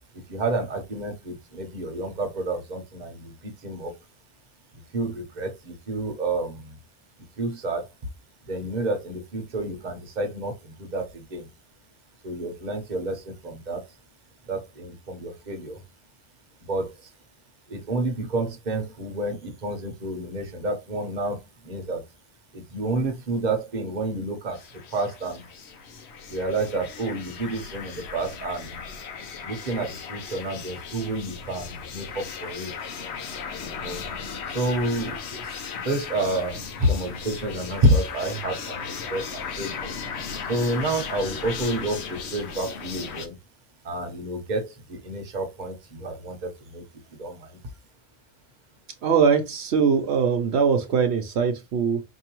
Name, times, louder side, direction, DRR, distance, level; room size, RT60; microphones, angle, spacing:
voice 1, 0.3-3.9 4.7-6.8 7.4-7.9 8.4-11.5 12.2-13.9 14.5-15.8 16.6-17.1 17.7-22.0 22.5-25.4 26.3-28.8 29.4-32.7 33.7-34.1 34.5-39.9 40.4-43.4 43.8-46.9 47.2-47.6, right 2 dB, 45° right, 1.0 m, -29 dB
sound 1, 24.5-43.3, left 6 dB, 85° left, 1.0 m, -36 dB
voice 2, 49.0-52.0, right 6 dB, 80° right, 1.0 m, -22 dB
4.6 x 2.7 x 2.9 m
omnidirectional pair, 1.1 m